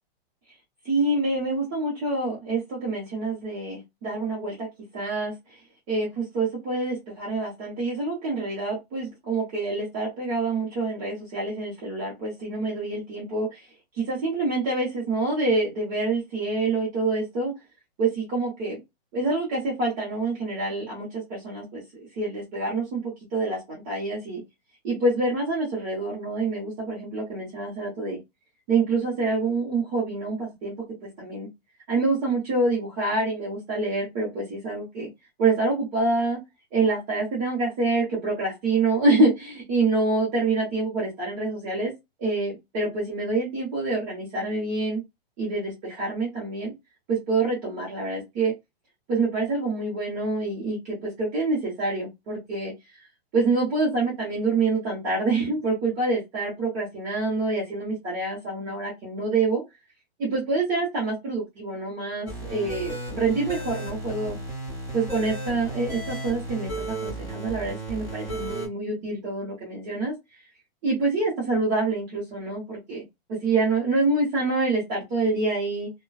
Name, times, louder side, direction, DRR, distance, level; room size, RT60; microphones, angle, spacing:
voice 1, 0.8-4.7 4.9-5.6 5.9-13.7 14.0-17.5 18.0-18.8 19.1-24.4 24.8-28.2 28.7-30.7 31.2-31.5 31.9-35.1 35.4-36.4 36.7-41.9 42.2-45.0 45.4-46.7 47.1-48.5 49.1-52.7 53.3-59.6 60.2-64.4 64.9-70.1 70.8-73.0 73.4-75.9, right 3 dB, 20° right, -6 dB, 0.8 m, -26 dB
sound 1, 62.3-68.7, right 2 dB, 5° left, 1.1 m, -34 dB
2.4 x 2.2 x 2.3 m, 0.20 s
hypercardioid pair, 170°, 31 cm